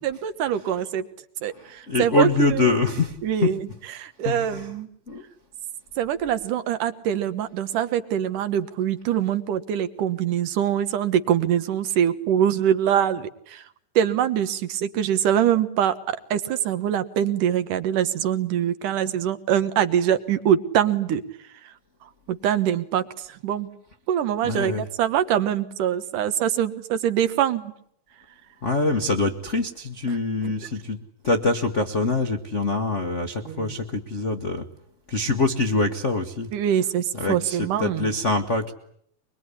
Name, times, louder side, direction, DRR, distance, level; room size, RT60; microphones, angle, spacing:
voice 1, 0.0-1.1 1.4-2.8 3.2-4.9 6.0-13.6 14.0-21.2 22.3-23.0 23.4-23.7 24.1-27.7 33.2-33.8 36.5-38.1, right 10 dB, 75° right, 11 dB, 2.8 m, -24 dB
voice 2, 1.6-3.5 4.2-4.7 5.1-5.2 24.4-24.9 28.6-31.0 31.2-34.7 35.1-36.5 37.1-38.7, left 3 dB, 75° left, 7 dB, 0.6 m, -24 dB
23.0 x 23.0 x 9.8 m, 0.67 s
omnidirectional pair, 3.8 m